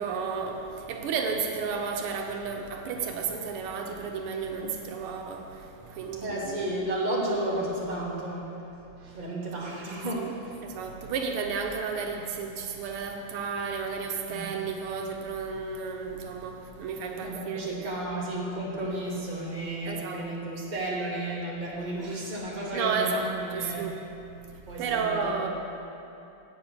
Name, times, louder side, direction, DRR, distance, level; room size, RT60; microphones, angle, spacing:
voice 1, 0.0-6.7 10.1-10.3 10.6-17.9 19.9-20.3 22.7-24.0 24.7-25.5, right 5 dB, 80° right, 3 dB, 1.7 m, -32 dB
voice 2, 6.2-8.6 9.0-10.6 14.3-14.5 17.2-23.9 24.7-25.5, right 1 dB, 20° right, -5 dB, 1.5 m, -33 dB
8.6 x 6.9 x 6.9 m, 2.7 s
omnidirectional pair, 2.4 m